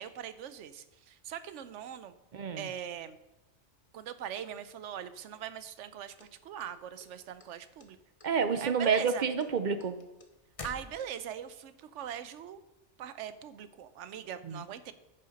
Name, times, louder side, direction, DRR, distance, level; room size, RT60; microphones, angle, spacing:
voice 1, 0.0-2.2 2.6-3.2 3.9-8.0 8.6-9.3 10.6-12.6 13.0-14.9, right 9 dB, 80° right, 13 dB, 1.0 m, -41 dB
voice 2, 2.3-2.7 8.2-10.0 14.4-14.6, right 6 dB, 50° right, 10 dB, 0.6 m, -29 dB
sound 1, 6.2-7.5 7.8-8.3 8.6-11.4, left 3 dB, 30° left, 0.8 m, -48 dB
9.8 x 6.6 x 5.2 m, 0.99 s
omnidirectional pair, 1.2 m